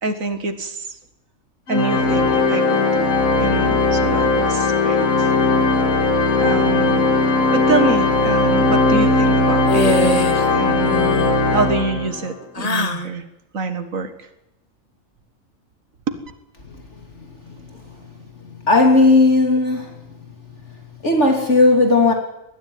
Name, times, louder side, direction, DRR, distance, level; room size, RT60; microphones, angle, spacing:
voice 1, 0.0-1.0 1.7-3.1 3.4-5.3 6.4-7.1 7.5-11.0 11.5-13.2 13.5-14.3 16.1-16.2, right 3 dB, 75° right, 9 dB, 2.3 m, -25 dB
Organ, 1.7-12.3, left 3 dB, 90° left, 2.4 m, -18 dB
sound 1, 9.7-10.5 10.8-11.3 12.5-13.1, left 2 dB, 30° left, 1.1 m, -22 dB
voice 2, 18.6-20.0 21.0-22.1, left 3 dB, 55° left, 3 dB, 3.4 m, -15 dB
20.5 x 14.0 x 9.5 m, 0.88 s
omnidirectional pair, 1.4 m